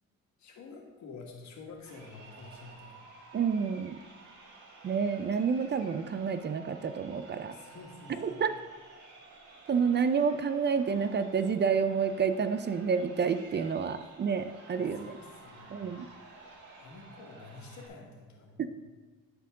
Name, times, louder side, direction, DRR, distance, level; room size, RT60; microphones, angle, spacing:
voice 1, 0.4-3.1 7.5-8.4 14.0-14.1 14.8-15.8 16.8-18.7, left 3 dB, 65° left, 0 dB, 1.8 m, -49 dB
Crowd, 1.8-17.9, right 3 dB, 70° right, 1.7 m, -53 dB
voice 2, 3.3-4.0 4.8-7.5 8.2-8.5 9.7-15.1 15.7-16.1 18.6-18.7, right 6 dB, 35° right, 11 dB, 0.4 m, -29 dB
12.0 x 4.6 x 3.7 m, 1.4 s
cardioid pair, 90°, 30 cm